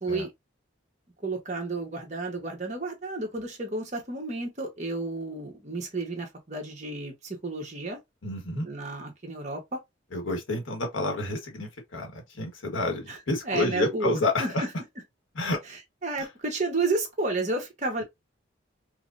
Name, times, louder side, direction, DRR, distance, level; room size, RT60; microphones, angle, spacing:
voice 1, 1.2-8.0 8.6-9.8 13.1-13.2 13.4-14.7 15.7-18.0, right 3 dB, 40° right, 1.2 m, -31 dB
voice 2, 8.2-8.7 10.1-14.7 15.3-15.6 16.2-16.3, left 2 dB, 90° left, 1.3 m, -29 dB
4.7 x 2.2 x 2.5 m
head